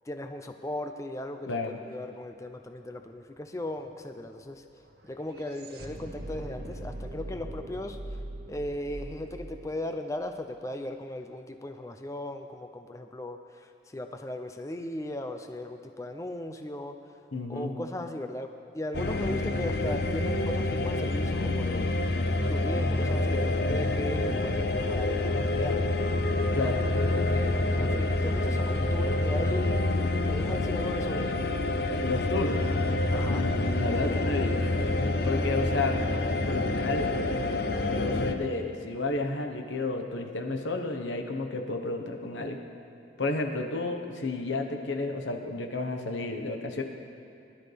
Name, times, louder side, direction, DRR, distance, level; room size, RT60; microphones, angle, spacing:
voice 1, 0.1-4.6 5.0-8.2 8.5-17.0 17.5-21.9 22.5-25.8 26.6-26.8 27.1-31.4 33.1-33.4 34.9-35.0, left 1 dB, 15° left, 6 dB, 0.5 m, -37 dB
voice 2, 1.5-1.8 17.3-17.8 26.5-26.8 32.0-32.6 33.3-34.6 35.2-36.0 36.5-37.1 37.8-42.6 43.2-46.8, left 3 dB, 90° left, 4 dB, 1.3 m, -31 dB
sound 1, 2.4-2.5 2.7-10.9, right 1 dB, 55° right, 1.1 m, -42 dB
sound 2, 18.9-38.3, left 2 dB, 55° left, 0.7 m, -27 dB
21.0 x 12.0 x 3.5 m, 2.7 s
head